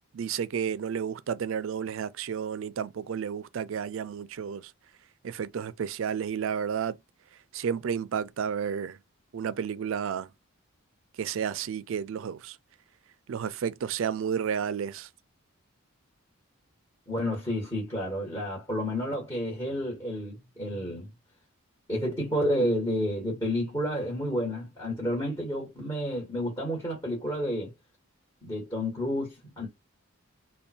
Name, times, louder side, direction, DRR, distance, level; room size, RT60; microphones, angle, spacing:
voice 1, 0.1-4.7 5.2-7.0 7.5-9.0 9.3-10.3 11.2-12.6 13.3-15.1, right 7 dB, 65° right, 0.4 m, -31 dB
voice 2, 17.1-21.1 21.9-27.7 28.4-29.7, equal, 20° left, 1.4 m, -30 dB
3.5 x 2.2 x 4.2 m
head